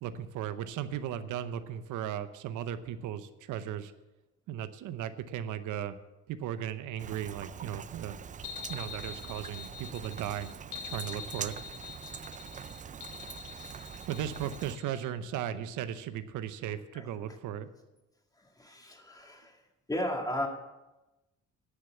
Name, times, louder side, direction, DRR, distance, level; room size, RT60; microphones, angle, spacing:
voice 1, 0.0-3.9 4.5-5.9 6.3-8.2 8.7-10.5 10.8-11.6 14.1-17.7, right 10 dB, 90° right, 11 dB, 0.8 m, -36 dB
Rain, 7.0-14.8, right 7 dB, 25° right, 0.4 m, -44 dB
sound 1, 8.4-15.1, left 7 dB, 80° left, 1.0 m, -45 dB
voice 2, 16.9-17.4 18.4-19.6 19.9-20.5, left 1 dB, 10° left, 3 dB, 2.1 m, -35 dB
11.0 x 6.6 x 8.2 m, 1.0 s
cardioid pair, 100°, 30 cm